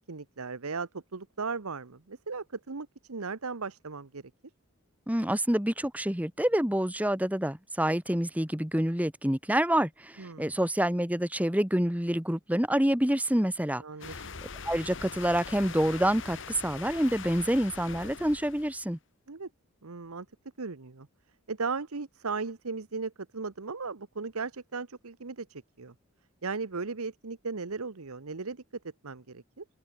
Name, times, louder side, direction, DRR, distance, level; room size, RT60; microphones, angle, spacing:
voice 1, 0.0-4.2 10.2-10.5 13.8-14.3 19.3-19.5 19.8-20.3 20.6-21.1 21.5-25.9 26.4-28.6 29.0-29.6, right 4 dB, 80° right, 1.1 m, -37 dB
voice 2, 5.1-13.8 14.6-19.0, right 1 dB, 5° right, 1.5 m, -27 dB
sound 1, 14.0-18.9, left 5 dB, 55° left, 1.2 m, -42 dB
open air
head